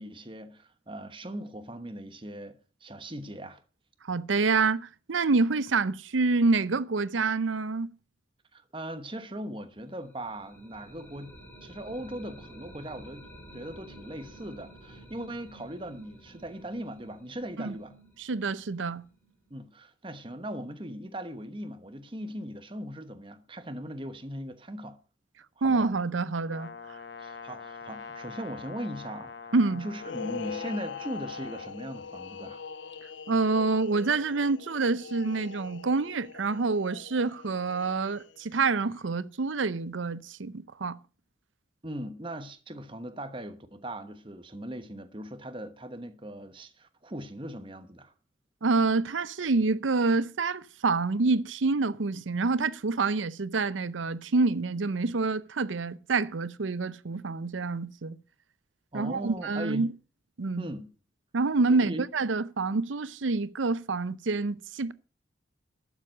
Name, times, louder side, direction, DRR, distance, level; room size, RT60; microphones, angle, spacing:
voice 1, 0.0-3.6 8.5-13.3 13.5-18.0 19.5-25.0 25.6-25.9 27.2-29.5 29.8-32.6 41.8-48.1 58.9-59.9 60.6-60.9 61.7-62.1, right 1 dB, 25° right, 1.2 m, -39 dB
voice 2, 4.1-7.9 17.6-17.8 18.2-19.0 25.6-26.7 29.5-29.9 33.3-41.0 48.6-58.2 58.9-59.9 60.4-60.7 61.3-64.9, right 3 dB, 85° right, 0.7 m, -27 dB
sound 1, 9.9-19.6, right 1 dB, 10° left, 4.6 m, -51 dB
Brass instrument, 26.5-31.7, left 5 dB, 60° left, 1.2 m, -44 dB
sound 2, 30.0-38.5, left 6 dB, 75° left, 0.6 m, -42 dB
12.0 x 7.3 x 6.5 m
head